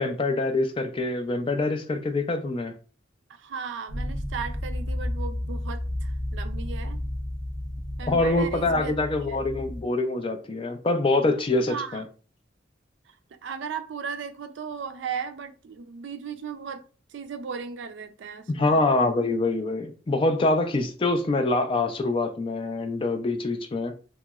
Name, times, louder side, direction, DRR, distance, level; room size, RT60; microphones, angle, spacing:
voice 1, 0.0-2.7 8.1-12.0 18.5-24.0, left 2 dB, 30° left, 0.4 m, -25 dB
voice 2, 3.3-7.0 8.0-8.9 9.3-9.4 11.7-12.0 13.1-13.2 13.4-18.8, right 6 dB, 75° right, 0.4 m, -36 dB
sound 1, 3.9-9.8, left 1 dB, 75° left, 1.0 m, -32 dB
2.9 x 2.9 x 2.3 m
head